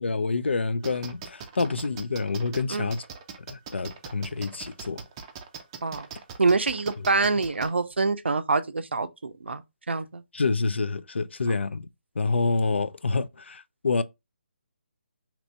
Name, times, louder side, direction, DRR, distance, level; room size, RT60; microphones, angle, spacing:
voice 1, 0.0-3.0 3.5-5.0 10.3-11.9 12.2-14.0, left 3 dB, 80° left, 0.3 m, -27 dB
sound 1, 0.8-7.7, right 6 dB, 25° right, 0.5 m, -40 dB
voice 2, 6.4-10.2, right 3 dB, 80° right, 0.5 m, -26 dB
3.0 x 2.6 x 3.1 m
figure-of-eight pair, 150°, 6 cm